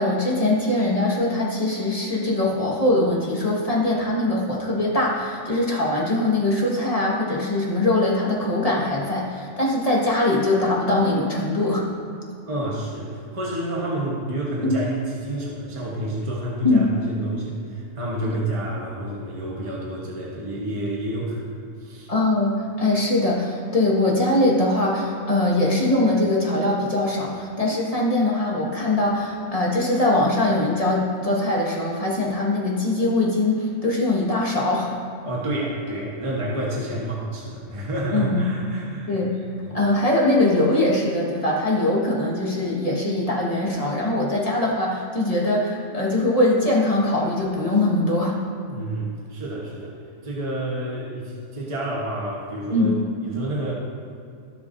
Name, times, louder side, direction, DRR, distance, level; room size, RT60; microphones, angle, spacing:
voice 1, 0.0-11.9 14.6-14.9 16.6-16.9 18.2-18.3 22.1-34.9 38.1-38.5 39.1-39.3 39.7-48.4 52.7-53.0, left 2 dB, 30° left, -4 dB, 1.7 m, -22 dB
voice 2, 12.5-22.1 35.2-39.1 39.6-39.8 48.7-50.0 50.2-53.7, right 1 dB, 25° right, -4 dB, 1.3 m, -29 dB
17.0 x 6.9 x 2.7 m, 2.4 s
omnidirectional pair, 1.3 m